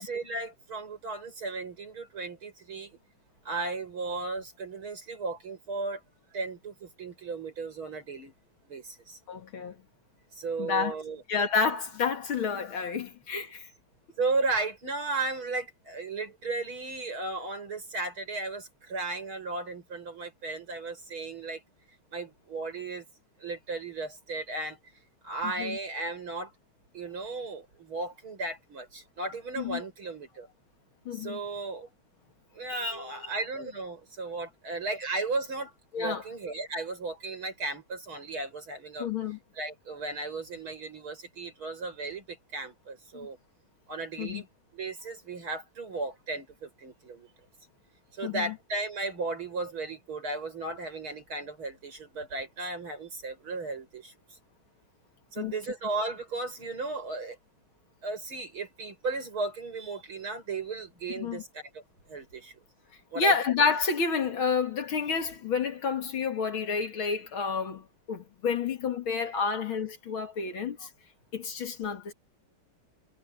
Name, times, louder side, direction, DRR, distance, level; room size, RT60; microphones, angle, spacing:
voice 1, 0.0-3.0 3.4-6.0 6.3-8.3 8.7-9.2 10.3-11.2 14.2-21.6 22.1-23.0 23.4-24.8 25.2-26.5 26.9-30.5 31.1-31.9 32.5-39.1 39.5-43.4 43.9-44.5 44.7-47.3 48.1-54.4 55.3-57.4 58.0-61.8 62.1-62.6 63.1-63.3 70.8-70.9, right 3 dB, 65° right, 8.5 m, -35 dB
voice 2, 9.3-9.8 10.6-10.9 11.3-13.7 25.6-25.8 29.6-29.8 31.1-31.4 32.7-33.1 35.9-36.2 39.0-39.4 43.1-43.3 44.2-44.4 48.2-48.5 55.4-55.5 61.2-61.4 63.2-70.9 71.3-72.1, left 5 dB, 65° left, 2.9 m, -29 dB
omnidirectional pair, 2.4 m